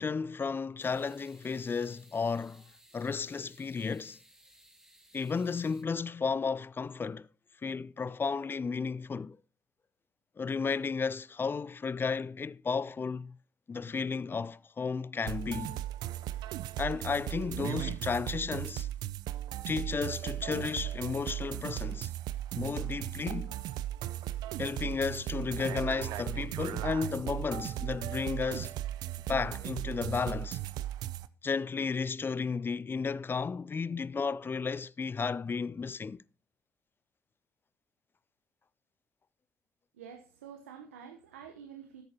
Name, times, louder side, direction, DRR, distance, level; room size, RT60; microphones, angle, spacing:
voice 1, 0.0-2.6 2.9-4.2 5.1-7.3 7.6-9.4 10.4-13.4 13.7-15.8 16.8-18.9 19.7-22.1 22.5-23.6 24.6-28.7 29.3-30.6 31.4-36.2, left 5 dB, 30° left, 0.5 m, -33 dB
sound 1, 0.8-5.8, right 1 dB, 5° right, 2.1 m, -60 dB
sound 2, 15.3-31.3, right 13 dB, 65° right, 0.6 m, -37 dB
voice 2, 39.9-42.0, right 8 dB, 90° right, 0.9 m, -48 dB
13.0 x 10.5 x 2.8 m
hypercardioid pair, 50°, 7 cm